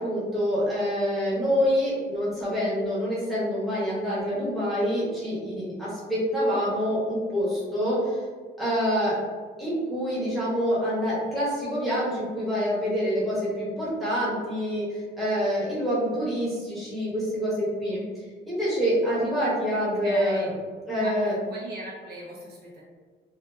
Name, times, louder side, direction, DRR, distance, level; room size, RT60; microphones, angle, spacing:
voice 1, 0.0-8.2 8.6-9.2 9.6-18.0 18.4-20.5 20.9-21.4, equal, ahead, -9 dB, 0.8 m, -26 dB
voice 2, 20.0-20.5 21.0-22.8, equal, 60° right, -5 dB, 0.7 m, -39 dB
2.8 x 2.3 x 2.3 m, 1.5 s
cardioid pair, 170°, 19 cm